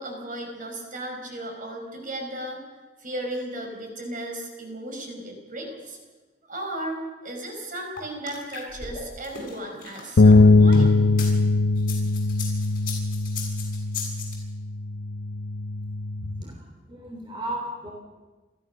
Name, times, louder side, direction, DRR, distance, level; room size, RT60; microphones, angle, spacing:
voice 1, 0.0-2.6 3.0-6.0 6.5-11.1, right 1 dB, 45° right, 2 dB, 4.9 m, -35 dB
sound 1, 8.0-11.3 11.8-14.3, left 2 dB, 50° left, 7.1 m, -33 dB
sound 2, 10.2-16.4, left 3 dB, 65° left, 0.6 m, -20 dB
voice 2, 16.2-17.9, right 1 dB, 25° right, 0 dB, 3.3 m, -35 dB
29.5 x 14.0 x 6.7 m, 1.3 s
head